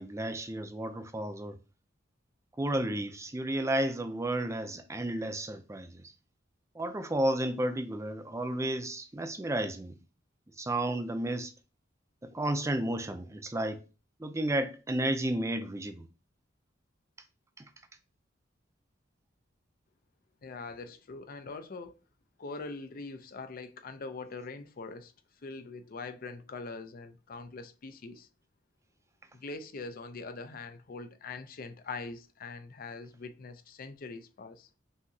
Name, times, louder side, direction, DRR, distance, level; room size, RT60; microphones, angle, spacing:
voice 1, 0.0-1.6 2.6-6.1 6.7-10.0 10.6-11.5 12.2-13.9 14.2-16.0 17.6-17.7, right 1 dB, 15° right, 0.5 m, -32 dB
voice 2, 20.4-22.0 22.4-25.1 25.4-28.3 29.3-34.7, left 3 dB, 50° left, 0.5 m, -43 dB
5.7 x 2.8 x 2.7 m
head